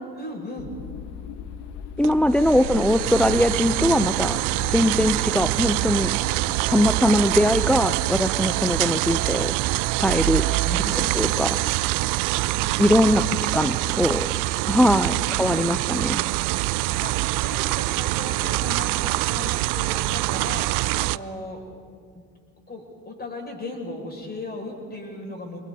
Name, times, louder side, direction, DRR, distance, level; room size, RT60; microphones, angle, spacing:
voice 1, 0.1-0.7 2.1-2.7 3.1-3.3 3.7-4.0 10.6-11.2 12.5-13.6 15.1-15.6 17.0-21.6 22.1-22.2 22.7-25.6, left 2 dB, 20° left, 1 dB, 6.5 m, -37 dB
sound 1, 0.6-8.0, left 6 dB, 55° left, 1.5 m, -39 dB
voice 2, 2.0-4.4 4.7-6.1 6.7-9.5 10.0-10.4 11.2-11.6 12.8-13.2 13.5-14.3 14.6-16.2, left 1 dB, ahead, 10 dB, 0.6 m, -21 dB
sound 2, 2.0-21.2, right 20 dB, 40° right, 0.5 m, -25 dB
Musical instrument, 5.9-10.7, right 15 dB, 65° right, 3.4 m, -41 dB
30.0 x 23.0 x 4.1 m, 2.1 s
figure-of-eight pair, 65°, 49 cm